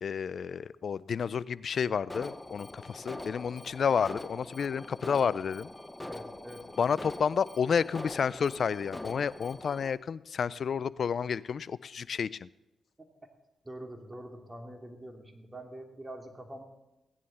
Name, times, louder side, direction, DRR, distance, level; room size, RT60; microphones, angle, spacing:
voice 1, 0.0-5.7 6.8-12.5, left 6 dB, 60° left, 20 dB, 0.4 m, -30 dB
Alarm, 2.1-9.9, left 1 dB, 15° left, 0.9 m, -43 dB
voice 2, 6.1-6.8 13.6-16.6, right 1 dB, 20° right, 3 dB, 2.4 m, -45 dB
16.5 x 9.9 x 4.2 m, 0.95 s
supercardioid pair, 55°, 0 cm